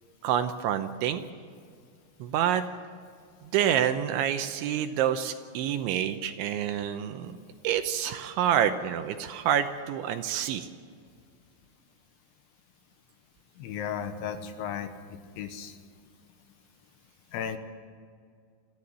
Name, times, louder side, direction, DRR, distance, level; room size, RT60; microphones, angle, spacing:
voice 1, 0.2-1.2 2.2-2.6 3.5-7.4 7.6-10.7, right 10 dB, 75° right, 8 dB, 3.0 m, -27 dB
voice 2, 13.6-14.9 15.4-15.8 17.3-17.6, left 8 dB, 75° left, 8 dB, 3.2 m, -34 dB
23.5 x 15.0 x 9.7 m, 2.2 s
omnidirectional pair, 5.9 m